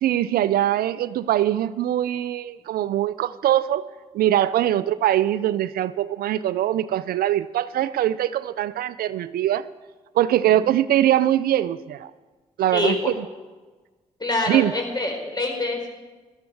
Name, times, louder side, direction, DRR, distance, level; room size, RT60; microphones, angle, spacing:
voice 1, 0.0-3.8 4.1-9.7 10.1-12.1 12.6-13.0 14.5-14.7, right 12 dB, 75° right, 16 dB, 0.4 m, -22 dB
voice 2, 12.7-13.1 14.2-15.9, left 2 dB, 25° left, 2 dB, 4.6 m, -25 dB
17.5 x 13.0 x 4.7 m, 1.3 s
hypercardioid pair, 40°, 16 cm